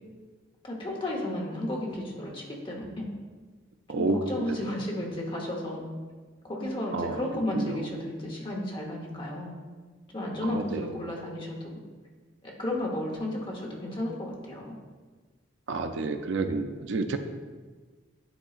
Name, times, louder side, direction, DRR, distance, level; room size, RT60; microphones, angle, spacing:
voice 1, 0.6-3.1 3.9-5.9 6.4-9.5 10.1-11.8 12.4-14.8, left 1 dB, 25° left, -1 dB, 0.9 m, -33 dB
voice 2, 3.9-4.2 4.5-4.6 6.9-7.2 7.6-7.7 10.5-10.9 15.7-17.2, right 3 dB, 75° right, 7 dB, 0.4 m, -29 dB
10.0 x 3.8 x 2.4 m, 1.4 s
head